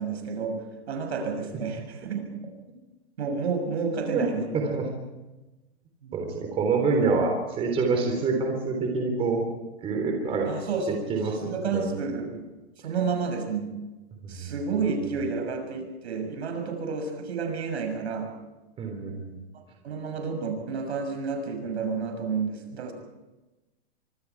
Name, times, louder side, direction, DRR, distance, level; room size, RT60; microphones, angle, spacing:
voice 1, 0.0-2.3 3.2-4.5 6.0-6.2 10.5-11.1 11.5-12.5 12.8-13.7 14.3-18.3 19.8-22.9, right 5 dB, 80° right, 5 dB, 6.6 m, -30 dB
voice 2, 4.5-4.8 6.1-9.4 9.8-10.5 10.9-11.9 14.2-14.6 15.1-15.2 18.8-19.4, right 4 dB, 15° right, 2 dB, 3.7 m, -27 dB
25.0 x 25.0 x 4.8 m, 1.1 s
hypercardioid pair, 165°, 33 cm